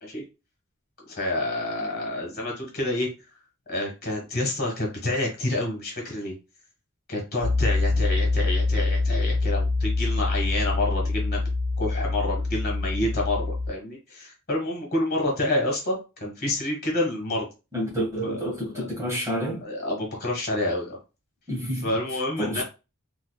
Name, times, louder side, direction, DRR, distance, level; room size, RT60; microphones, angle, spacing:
voice 1, 1.0-3.1 3.7-6.3 7.1-11.4 11.8-17.5 18.2-18.4 18.7-18.8 19.6-21.0 21.8-22.6, left 1 dB, 45° left, 1.4 m, -28 dB
Piano, 7.4-13.7, left 3 dB, 15° left, 1.9 m, -25 dB
voice 2, 17.7-19.6 21.5-22.0 22.4-22.6, equal, 15° right, 1.7 m, -29 dB
3.9 x 2.8 x 2.3 m
head